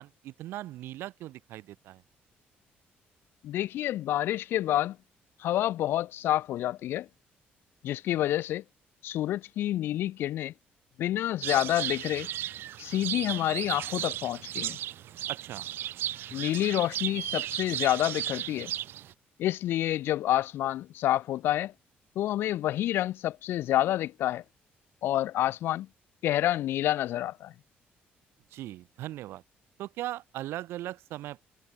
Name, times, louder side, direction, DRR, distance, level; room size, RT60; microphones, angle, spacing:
voice 1, 0.0-2.0 15.3-15.6 28.5-29.4 29.8-31.4, right 15 dB, 90° right, 5.4 m, -39 dB
voice 2, 3.4-5.0 5.4-7.1 7.8-8.6 9.0-10.5 11.0-12.3 12.8-14.8 16.3-18.7 19.4-21.7 22.2-24.4 25.0-25.9 26.2-27.5, left 13 dB, 75° left, 0.4 m, -28 dB
sound 1, 11.4-19.1, right 12 dB, 70° right, 0.8 m, -35 dB
cardioid pair, 135°, 4 cm